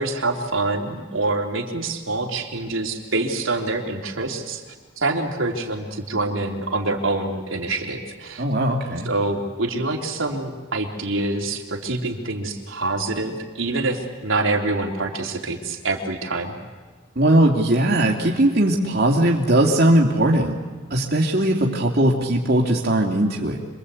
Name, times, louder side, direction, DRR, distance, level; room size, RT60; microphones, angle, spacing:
voice 1, 0.0-4.6 5.0-8.4 9.1-16.6, right 2 dB, 80° right, 1 dB, 3.4 m, -26 dB
voice 2, 8.4-9.1 17.2-20.5 20.9-23.6, right 1 dB, 50° right, -1 dB, 2.6 m, -19 dB
27.0 x 23.5 x 8.4 m, 1.4 s
head